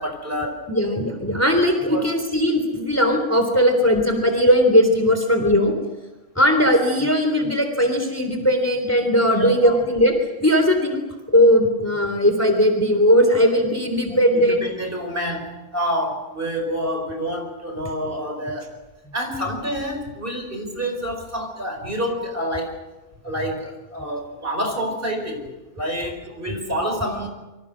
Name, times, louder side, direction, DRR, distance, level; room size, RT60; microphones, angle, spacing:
voice 1, 0.0-0.6 1.9-2.1 9.3-9.8 14.3-18.7 19.1-22.8 23.2-27.3, equal, 40° right, 4 dB, 5.3 m, -28 dB
voice 2, 0.7-5.7 6.4-10.2 10.4-11.0 11.3-14.7 19.5-19.6, equal, 10° left, 5 dB, 3.5 m, -18 dB
27.5 x 25.0 x 6.4 m, 1.1 s
omnidirectional pair, 1.4 m